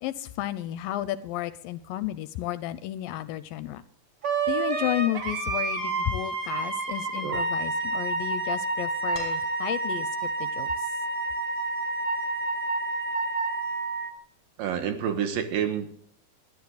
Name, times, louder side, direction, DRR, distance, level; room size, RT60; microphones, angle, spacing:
voice 1, 0.0-3.8 4.5-10.7, left 14 dB, 80° left, 14 dB, 2.2 m, -32 dB
Wind instrument woodwind instrument, 4.2-14.1, right 3 dB, 40° right, 2.7 m, -29 dB
sound 1, 9.1-10.2 11.7-11.8, equal, 5° left, 3.0 m, -44 dB
voice 2, 14.6-16.0, right 8 dB, 75° right, 7 dB, 2.9 m, -29 dB
22.5 x 12.0 x 2.4 m, 0.64 s
omnidirectional pair, 4.2 m